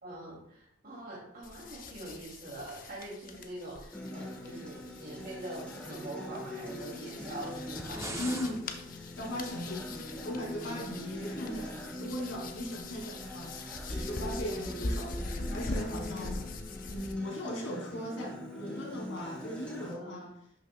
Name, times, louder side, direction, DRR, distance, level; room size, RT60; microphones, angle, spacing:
voice 1, 0.0-8.5 10.5-10.9 20.0-20.2, right 1 dB, 50° right, -6 dB, 2.5 m, -44 dB
sound 1, 1.4-17.1, left 2 dB, 45° left, 0.7 m, -42 dB
Acoustic guitar, 3.9-19.9, equal, 5° left, 1.4 m, -43 dB
sound 2, 7.6-8.6, right 2 dB, 15° right, 0.6 m, -40 dB
voice 2, 8.2-8.9 9.2-9.9 10.2-16.5 16.9-20.3, left 1 dB, 75° left, -1 dB, 2.7 m, -38 dB
11.0 x 6.1 x 2.3 m, 0.71 s
head